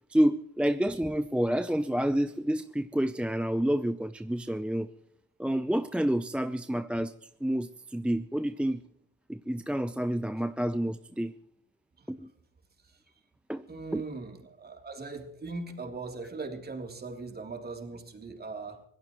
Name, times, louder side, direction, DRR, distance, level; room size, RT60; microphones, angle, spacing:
voice 1, 0.1-4.9 5.4-8.8 9.3-11.3 12.1-12.3 13.5-13.6 13.9-14.0, right 1 dB, 5° right, 12 dB, 0.6 m, -29 dB
voice 2, 13.7-18.8, right 3 dB, 30° right, 3 dB, 3.3 m, -40 dB
25.5 x 17.0 x 3.1 m, 0.74 s
cardioid pair, 90°, 30 cm